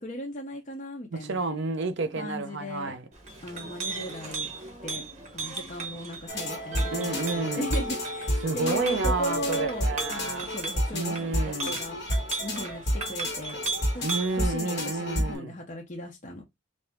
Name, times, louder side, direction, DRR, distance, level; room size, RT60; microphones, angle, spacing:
voice 1, 0.0-1.4 2.2-2.9 3.4-4.5 4.8-5.0 5.3-12.0 12.4-13.6 13.9-14.0 14.3-16.4, equal, 35° left, 0.7 m, -36 dB
voice 2, 1.1-3.0 6.9-7.7 8.4-10.5 10.9-11.8 14.0-15.6, right 3 dB, 60° right, 0.7 m, -30 dB
Chink clink, 3.1-14.4, right 3 dB, 35° right, 1.1 m, -37 dB
sound 1, 6.3-15.4, equal, 55° left, 1.6 m, -31 dB
3.6 x 2.7 x 3.5 m
head